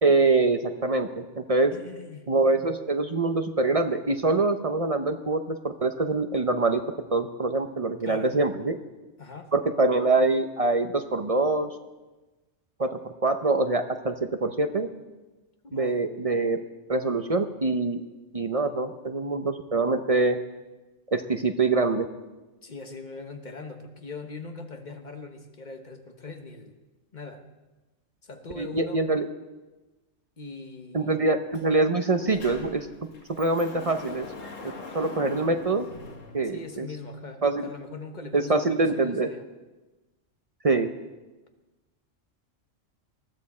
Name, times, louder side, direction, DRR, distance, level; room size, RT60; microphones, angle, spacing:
voice 1, 0.0-1.7 2.3-6.8 7.1-8.8 9.5-11.7 12.8-14.9 15.7-16.6 16.9-18.0 18.3-20.4 21.1-22.1 28.6-29.3 30.9-32.9 33.4-34.3 34.9-35.9 36.3-36.9 37.4-37.7 38.3-39.3 40.6-40.9, right 3 dB, 35° right, 7 dB, 0.7 m, -24 dB
voice 2, 1.7-2.3 8.0-8.3 9.2-9.5 15.6-16.1 22.6-26.8 27.1-27.4 28.2-29.0 30.4-31.2 36.5-39.4, left 3 dB, 35° left, 5 dB, 1.3 m, -41 dB
Sliding door, 31.5-31.7 32.0-37.0, left 3 dB, 80° left, 1.9 m, -42 dB
20.0 x 13.0 x 4.3 m, 1.2 s
omnidirectional pair, 1.3 m